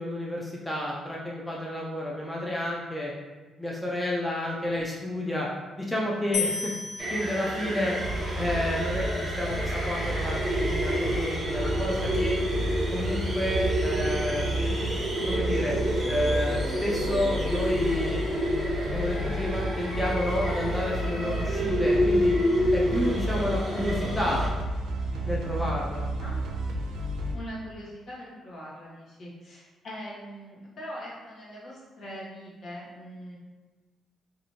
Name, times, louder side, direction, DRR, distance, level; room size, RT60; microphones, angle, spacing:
voice 1, 0.0-3.1 3.6-5.5 5.8-6.7 7.1-8.0 8.4-12.4 12.9-14.5 15.3-15.8 16.1-18.2 18.9-22.4 22.7-24.4 25.2-26.0, left 1 dB, 5° left, -4 dB, 0.4 m, -30 dB
sound 1, 6.3-9.6, left 5 dB, 85° left, 0.4 m, -36 dB
sound 2, 7.0-24.5, equal, 25° right, 0.8 m, -29 dB
sound 3, 8.0-27.3, right 1 dB, 85° right, 0.4 m, -32 dB
voice 2, 27.3-33.4, equal, 55° left, -6 dB, 1.1 m, -41 dB
2.9 x 2.5 x 2.7 m, 1.3 s
cardioid pair, 90°, 0 cm